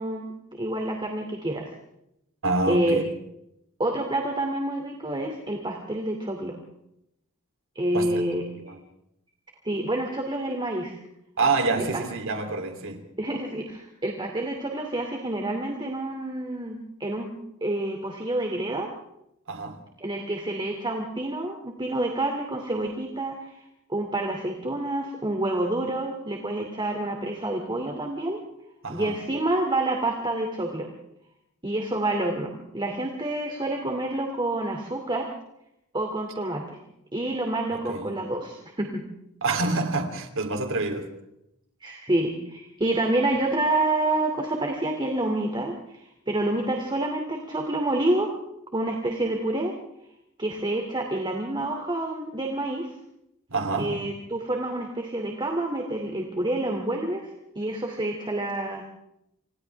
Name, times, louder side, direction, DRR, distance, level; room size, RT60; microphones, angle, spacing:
voice 1, 0.0-1.7 2.7-3.0 3.8-6.6 7.7-8.4 9.6-10.9 11.9-12.0 13.2-17.3 17.6-18.9 20.0-23.6 23.9-28.4 28.9-30.9 31.6-35.3 35.9-36.6 37.1-39.0 41.8-48.3 48.7-49.7 50.4-52.9 53.8-57.3 57.6-58.9, right 1 dB, 20° right, 2 dB, 2.7 m, -28 dB
voice 2, 2.4-3.1 7.9-8.1 8.6-8.8 11.4-13.0 19.5-19.8 28.8-29.2 37.7-38.2 39.4-41.1 53.5-54.1, right 3 dB, 60° right, 5 dB, 3.2 m, -27 dB
29.5 x 27.0 x 3.5 m, 0.81 s
head